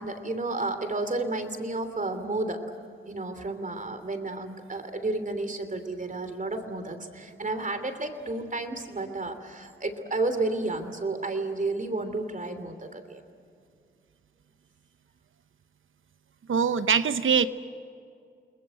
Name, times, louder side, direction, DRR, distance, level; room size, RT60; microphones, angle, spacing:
voice 1, 0.0-2.6 3.1-13.2, right 2 dB, 40° right, 8 dB, 3.2 m, -31 dB
voice 2, 16.5-17.5, right 6 dB, 80° right, 12 dB, 1.0 m, -23 dB
29.5 x 21.0 x 7.9 m, 2.3 s
cardioid pair, 75°, 21 cm